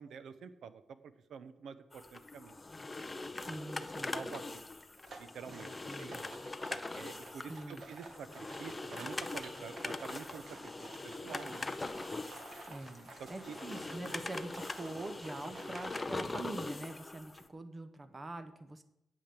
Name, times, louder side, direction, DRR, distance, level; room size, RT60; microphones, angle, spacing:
voice 1, 0.0-2.6 4.1-4.6 5.2-6.3 6.9-10.7 11.0-12.0 13.2-13.6 14.1-14.2 15.7-15.8, right 6 dB, 75° right, 13 dB, 0.8 m, -48 dB
sound 1, 1.9-17.5, left 2 dB, 15° left, 0.6 m, -42 dB
voice 2, 3.3-4.4 5.5-6.2 7.5-7.8 12.7-18.8, right 2 dB, 20° right, 9 dB, 0.9 m, -45 dB
sound 2, 5.0-16.1, right 2 dB, 45° right, 1.8 m, -52 dB
8.9 x 8.5 x 7.6 m, 0.86 s
wide cardioid pair, 170°, 0 cm